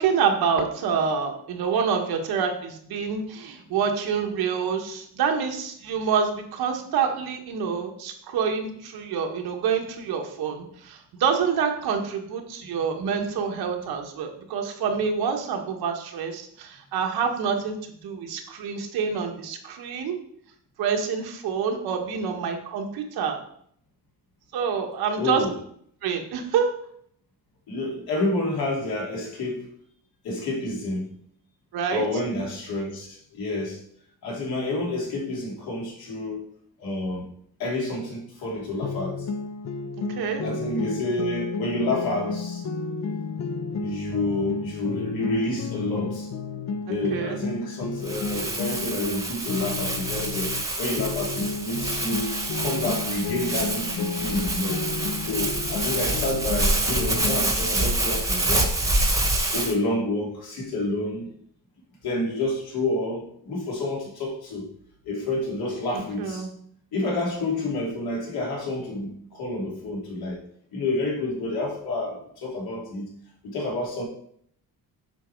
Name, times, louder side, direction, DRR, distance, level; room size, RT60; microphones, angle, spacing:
voice 1, 0.0-17.8 18.0-20.2 20.8-23.4 24.5-25.4 26.0-26.7 31.7-32.0 40.0-40.4 46.8-47.4 65.9-66.5, right 6 dB, 90° right, 3 dB, 1.6 m, -27 dB
voice 2, 25.2-25.6 27.7-29.7 30.2-31.1 31.9-33.8 34.2-36.5 36.8-37.2 37.6-39.3 40.4-42.6 43.8-46.3 46.9-52.3 52.6-58.8 59.5-61.3 62.0-64.7 65.0-66.5 66.9-70.4 70.7-73.1 73.4-74.0, left 2 dB, 80° left, -2 dB, 3.0 m, -29 dB
sound 1, 38.8-50.7 51.0-57.5, left 4 dB, 45° left, 0.6 m, -32 dB
Crumpling crinkling, 48.0-59.7, right 2 dB, 10° right, 1.1 m, -27 dB
8.0 x 5.3 x 4.6 m, 0.66 s
cardioid pair, 145°, 36 cm